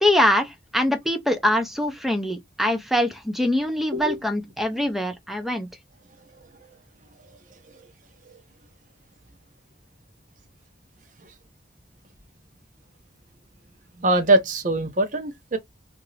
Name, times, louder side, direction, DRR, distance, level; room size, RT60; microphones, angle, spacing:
voice 1, 0.0-5.7, left 1 dB, ahead, 0.5 m, -23 dB
voice 2, 14.0-15.6, right 2 dB, 45° right, 0.7 m, -22 dB
2.8 x 2.5 x 3.1 m
head